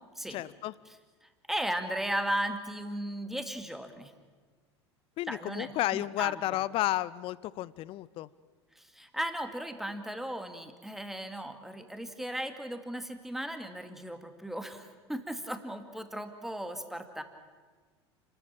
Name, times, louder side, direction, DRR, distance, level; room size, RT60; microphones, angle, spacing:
voice 1, 0.3-0.7 5.2-8.3, left 15 dB, 40° left, 20 dB, 0.6 m, -32 dB
voice 2, 1.2-4.1 5.3-6.6 8.8-17.2, right 1 dB, ahead, 7 dB, 2.3 m, -36 dB
29.0 x 13.5 x 8.8 m, 1.4 s
figure-of-eight pair, 75°, 14 cm